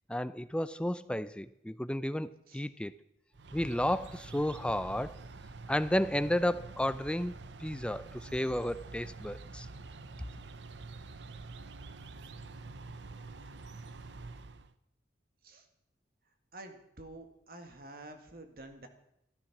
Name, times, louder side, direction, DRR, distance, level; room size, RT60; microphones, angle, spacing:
voice 1, 0.1-2.9 3.5-5.2 5.7-9.7, left 1 dB, 5° left, 14 dB, 0.4 m, -32 dB
sound 1, 3.3-14.7, right 3 dB, 80° right, 0.8 m, -47 dB
voice 2, 16.5-18.9, right 2 dB, 55° right, 6 dB, 1.9 m, -49 dB
13.0 x 13.0 x 6.0 m, 0.80 s
head